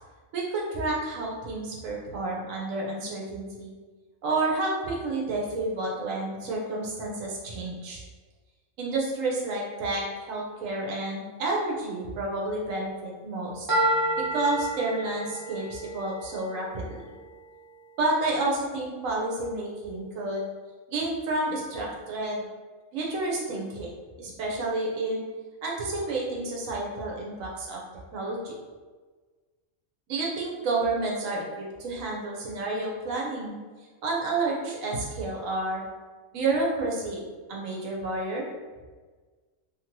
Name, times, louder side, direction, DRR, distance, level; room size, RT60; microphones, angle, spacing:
voice 1, 0.3-3.7 4.2-8.0 8.8-13.7 14.2-17.0 18.0-20.5 20.9-22.4 22.9-23.9 24.2-25.2 25.6-27.8 28.1-28.5 30.1-33.6 34.0-35.8 36.3-38.5, right 2 dB, 85° right, -2 dB, 1.1 m, -30 dB
sound 1, 13.7-17.7, right 1 dB, 25° right, 0.4 m, -30 dB
2.8 x 2.7 x 2.9 m, 1.4 s
omnidirectional pair, 1.3 m